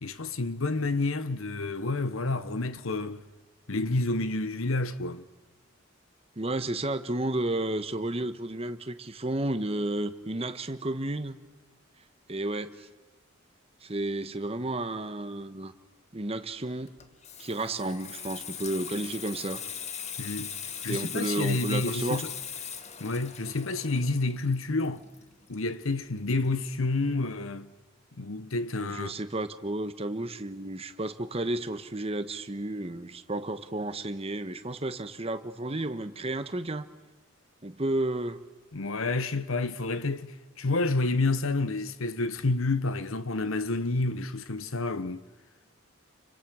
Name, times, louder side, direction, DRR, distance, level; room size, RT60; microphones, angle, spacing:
voice 1, 0.0-3.2 3.7-5.3 20.2-20.6 20.8-22.3 23.0-25.0 25.5-27.7 28.2-29.1 38.7-45.2, left 2 dB, 90° left, 1.1 m, -29 dB
voice 2, 6.4-11.4 12.3-12.9 13.8-15.7 16.1-16.9 17.4-19.6 20.9-22.2 28.8-36.9 37.6-38.4, right 1 dB, 30° right, 1.1 m, -32 dB
Water tap faucet / Sink (filling or washing), 16.9-26.2 26.5-26.7, left 8 dB, 35° left, 1.4 m, -40 dB
28.5 x 25.0 x 6.3 m
head